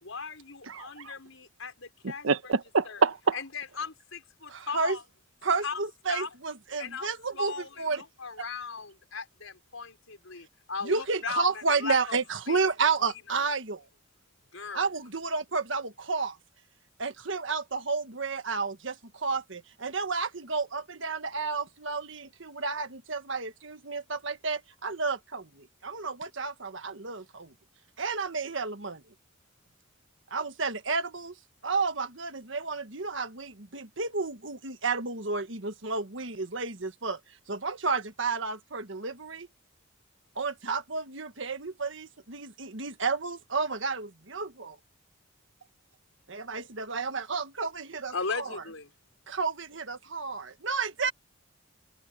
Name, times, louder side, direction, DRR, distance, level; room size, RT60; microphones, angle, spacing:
voice 1, 0.0-2.5 2.8-3.0 3.3-5.0 5.5-5.8 6.1-6.3 6.8-12.0 12.5-12.6 14.5-14.9 48.1-48.9, left 5 dB, 80° left, 4.8 m, -37 dB
voice 2, 0.7-1.1 2.2-3.4, right 4 dB, 80° right, 1.1 m, -26 dB
voice 3, 4.5-5.0 5.4-8.0 10.8-13.9 14.7-16.4 17.0-27.5 28.0-29.0 30.3-31.3 31.6-37.2 37.5-39.5 40.3-44.8 46.3-48.5 49.3-51.1, right 4 dB, 65° right, 1.6 m, -31 dB
head